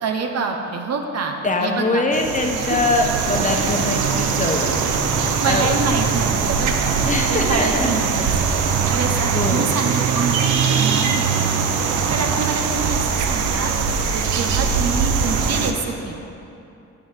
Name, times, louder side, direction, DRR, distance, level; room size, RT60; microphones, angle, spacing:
voice 1, 0.0-2.0 2.6-2.8 5.2-7.0 7.3-8.5 8.9-11.6 12.1-13.0 13.3-16.2, right 4 dB, 55° right, 3 dB, 1.1 m, -27 dB
voice 2, 1.4-4.7 5.4-5.7 7.1-8.0 9.3-9.6, left 2 dB, 25° left, 2 dB, 1.2 m, -22 dB
sound 1, 2.1-15.7, right 6 dB, 85° right, 0.9 m, -21 dB
8.1 x 6.8 x 7.5 m, 2.7 s
cardioid pair, 90°, 30 cm